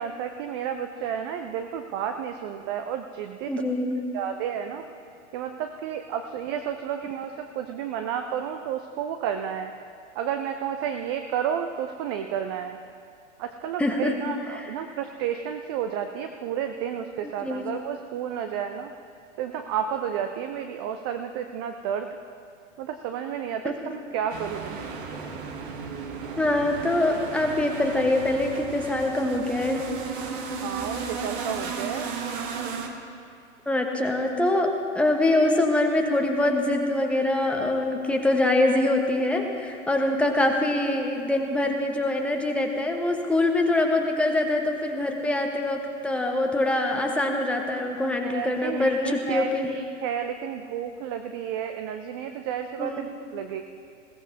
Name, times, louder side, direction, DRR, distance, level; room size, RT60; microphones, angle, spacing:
voice 1, 0.0-3.5 4.1-4.8 5.3-9.7 10.2-12.8 13.4-18.9 19.4-22.1 22.8-24.8 30.6-32.1 48.2-53.6, right 8 dB, 20° right, 6 dB, 0.4 m, -31 dB
voice 2, 3.5-4.0 13.8-14.2 14.5-14.7 17.4-17.6 23.6-23.7 26.4-29.8 33.7-49.7 52.8-53.1, left 2 dB, 5° left, 2 dB, 1.1 m, -24 dB
sound 1, 24.3-32.9, right 5 dB, 40° right, 1.5 m, -34 dB
20.5 x 17.0 x 2.8 m, 2.4 s
figure-of-eight pair, 100°, 37 cm